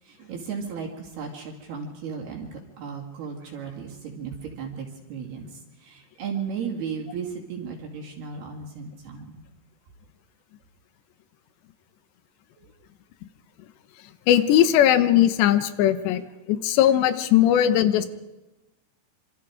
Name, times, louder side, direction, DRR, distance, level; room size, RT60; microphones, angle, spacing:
voice 1, 0.0-9.4 12.6-12.7, right 6 dB, 65° right, 1 dB, 4.4 m, -35 dB
voice 2, 14.3-16.2 16.5-18.1, left 11 dB, 80° left, 12 dB, 3.3 m, -19 dB
26.5 x 26.0 x 4.9 m, 1.0 s
omnidirectional pair, 5.0 m